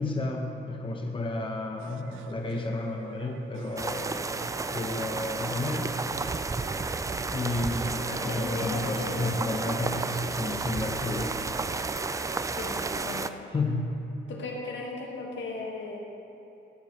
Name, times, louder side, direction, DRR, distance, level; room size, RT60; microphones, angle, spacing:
voice 1, 0.0-5.9 7.3-11.4 13.5-13.9, left 2 dB, 25° left, 2 dB, 1.0 m, -32 dB
sound 1, 1.8-13.1, right 9 dB, 80° right, 0.5 m, -49 dB
sound 2, 3.8-13.3, right 3 dB, 15° right, 0.4 m, -32 dB
voice 2, 8.1-9.5 12.4-13.4 14.3-16.0, left 3 dB, 70° left, -1 dB, 2.0 m, -37 dB
16.5 x 9.5 x 3.3 m, 3.0 s
cardioid pair, 90°, 20 cm